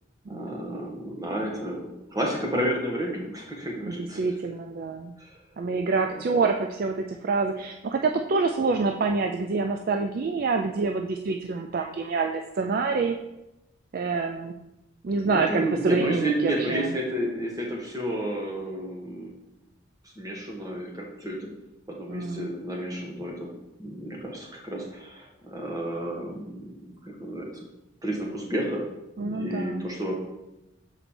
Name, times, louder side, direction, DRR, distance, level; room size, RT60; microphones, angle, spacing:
voice 1, 0.3-4.2 5.2-5.4 15.2-19.3 20.2-21.4 21.9-23.5 23.8-27.5 28.0-28.8 29.2-30.1, right 1 dB, 20° right, -1 dB, 1.2 m, -31 dB
voice 2, 3.8-5.1 5.6-13.2 13.9-14.5 15.0-16.9 22.1-22.5 29.2-29.9, right 4 dB, 45° right, 4 dB, 0.3 m, -27 dB
7.0 x 4.1 x 4.3 m, 0.93 s
head